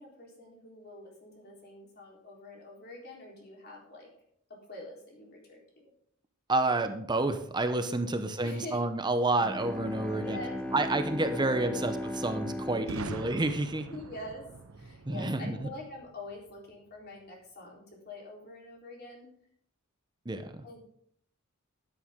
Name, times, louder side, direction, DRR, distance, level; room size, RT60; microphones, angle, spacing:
voice 1, 0.0-4.1 4.7-5.9 8.0-8.8 10.1-10.6 11.2-11.8 12.9-13.2 13.9-14.4 14.7-19.3 20.6-20.8, left 2 dB, 50° left, -2 dB, 3.8 m, -46 dB
voice 2, 6.5-10.4 10.7-13.9 15.1-15.7 20.2-20.6, right 2 dB, 20° right, 8 dB, 0.8 m, -29 dB
Bowed string instrument, 9.4-14.4, left 1 dB, 5° left, 0.8 m, -37 dB
Boom, 12.9-16.7, right 3 dB, 80° right, 0.7 m, -44 dB
13.0 x 9.2 x 3.7 m, 0.66 s
head